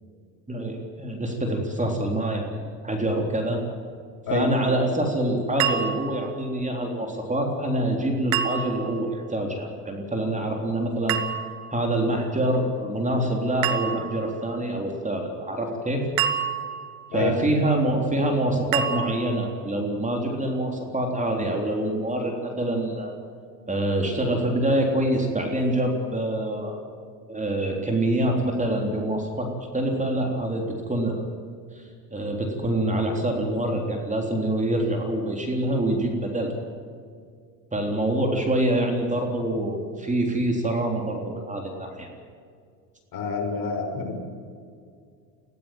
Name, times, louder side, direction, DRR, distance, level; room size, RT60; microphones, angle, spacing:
voice 1, 0.5-3.6 4.3-11.2 11.7-16.1 17.1-23.1 23.7-26.8 27.3-31.2 31.7-31.8 32.1-36.5 37.7-42.1, right 1 dB, 15° right, 2 dB, 3.7 m, -25 dB
sound 1, 5.6-6.3 8.3-9.0 11.1-11.8 13.6-14.3 16.2-17.1 18.7-19.5, right 10 dB, 60° right, 1.9 m, -28 dB
voice 2, 43.1-44.1, left 4 dB, 45° left, 2 dB, 6.2 m, -27 dB
21.5 x 16.0 x 9.1 m, 2.2 s
supercardioid pair, 95°, 49 cm